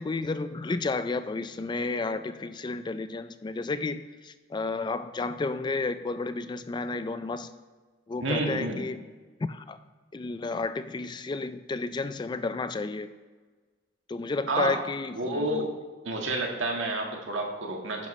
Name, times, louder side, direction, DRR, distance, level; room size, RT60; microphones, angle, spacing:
voice 1, 0.0-7.5 8.1-9.0 9.5-9.8 10.1-13.1 14.1-15.7, left 3 dB, 25° left, 12 dB, 0.3 m, -32 dB
voice 2, 8.2-8.8 14.5-14.8 15.1-15.7 16.0-18.1, right 2 dB, 75° right, 1 dB, 1.6 m, -29 dB
10.5 x 10.0 x 3.1 m, 1.4 s
head